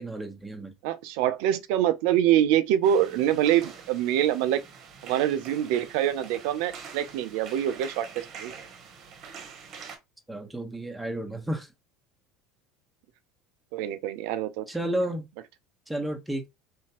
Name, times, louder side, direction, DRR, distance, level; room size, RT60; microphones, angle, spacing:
voice 1, 0.0-0.7 10.3-11.7 14.7-15.3 15.9-16.5, right 1 dB, 5° right, 1.2 m, -32 dB
voice 2, 0.8-4.6 5.0-8.5 13.7-14.7, right 11 dB, 65° right, 0.5 m, -25 dB
sound 1, 2.8-10.0, right 6 dB, 50° right, 1.1 m, -45 dB
3.4 x 2.8 x 3.0 m
hypercardioid pair, 80°, 0 cm